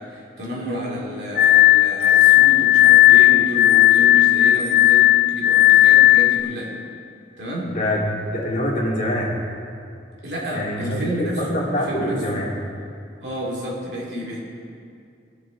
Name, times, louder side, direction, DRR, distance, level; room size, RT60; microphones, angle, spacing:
voice 1, 0.0-6.8 7.4-7.8 10.2-12.4 13.2-14.4, equal, 70° right, -4 dB, 2.5 m, -30 dB
Glass, 1.4-6.4, left 16 dB, 60° left, 0.5 m, -14 dB
voice 2, 7.7-8.0 8.3-9.4 10.5-12.5, equal, 45° left, -4 dB, 2.3 m, -25 dB
19.5 x 7.0 x 3.9 m, 2.4 s
head